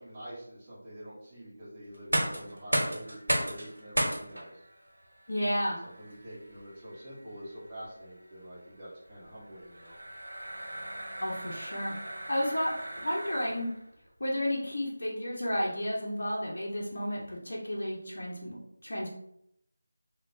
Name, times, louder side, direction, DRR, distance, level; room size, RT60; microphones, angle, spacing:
voice 1, 0.0-4.6 6.0-10.0, equal, 20° right, -10 dB, 0.9 m, -46 dB
sound 1, 1.9-13.8, right 1 dB, 75° right, 0.9 m, -36 dB
voice 2, 5.3-5.8 11.2-12.0 12.3-12.7 13.0-13.7 14.2-18.6 18.8-19.1, equal, 60° left, -5 dB, 0.8 m, -32 dB
3.2 x 2.2 x 2.5 m, 0.76 s
figure-of-eight pair, 170°, 0 cm